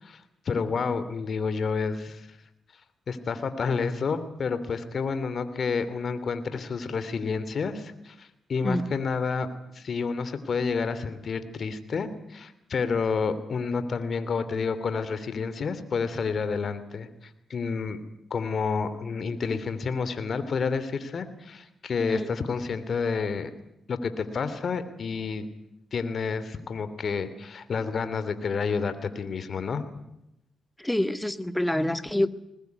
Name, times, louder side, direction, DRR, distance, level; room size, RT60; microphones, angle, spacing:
voice 1, 0.0-2.3 3.1-9.5 9.7-18.0 18.3-23.5 23.9-25.5 25.9-29.8, left 5 dB, 55° left, 12 dB, 3.1 m, -29 dB
voice 2, 30.8-32.3, left 1 dB, 10° left, 12 dB, 1.9 m, -26 dB
21.5 x 20.0 x 9.5 m, 0.85 s
supercardioid pair, 60°, 0 cm